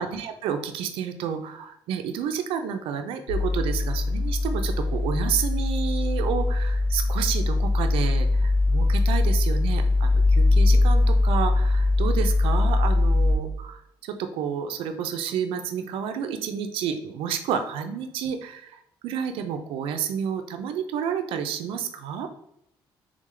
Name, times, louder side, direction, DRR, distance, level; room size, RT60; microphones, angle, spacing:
voice 1, 0.0-22.3, right 8 dB, 85° right, 7 dB, 0.5 m, -30 dB
sound 1, 3.3-13.4, left 2 dB, 75° left, 0.6 m, -21 dB
3.7 x 3.5 x 3.2 m, 0.77 s
cardioid pair, 175°, 9 cm